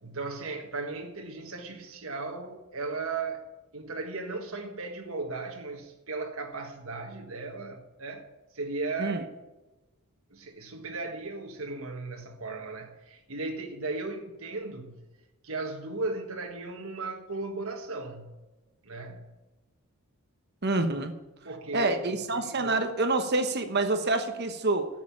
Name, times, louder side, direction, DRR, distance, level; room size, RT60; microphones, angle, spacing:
voice 1, 0.0-3.4 3.7-8.3 8.5-9.2 10.3-14.9 15.4-18.3 18.8-19.3 21.4-22.1 22.3-22.8, right 3 dB, 65° right, 1.6 m, -36 dB
voice 2, 20.6-21.1 21.7-24.9, right 2 dB, 45° right, 1.1 m, -27 dB
12.5 x 7.6 x 8.6 m
head